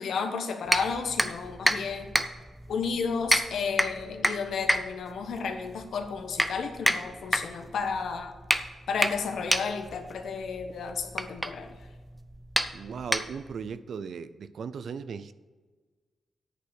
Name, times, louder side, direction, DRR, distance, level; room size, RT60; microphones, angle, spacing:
voice 1, 0.0-2.1 2.7-8.3 8.9-11.8, left 5 dB, 75° left, 6 dB, 1.3 m, -32 dB
sound 1, 0.7-13.7, right 1 dB, 5° right, 0.6 m, -30 dB
voice 2, 12.7-15.3, right 6 dB, 60° right, 14 dB, 0.5 m, -37 dB
9.9 x 5.6 x 6.8 m, 1.4 s
wide cardioid pair, 145°, 0 cm